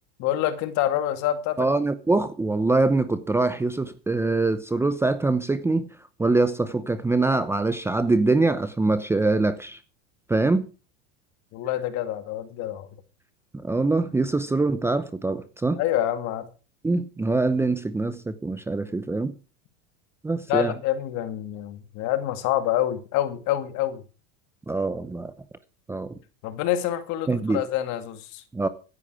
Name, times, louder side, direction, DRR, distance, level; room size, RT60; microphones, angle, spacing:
voice 1, 0.2-1.7 11.5-12.9 15.8-16.5 20.5-24.0 26.4-28.4, left 12 dB, 50° left, 2.3 m, -27 dB
voice 2, 1.6-5.9 6.2-9.8 10.3-10.7 13.6-15.8 16.8-19.3 20.2-20.7 24.7-25.3 25.9-26.1 27.3-27.6 28.5-28.7, right 3 dB, 5° right, 0.7 m, -24 dB
16.0 x 11.0 x 4.8 m
supercardioid pair, 140°, 35 cm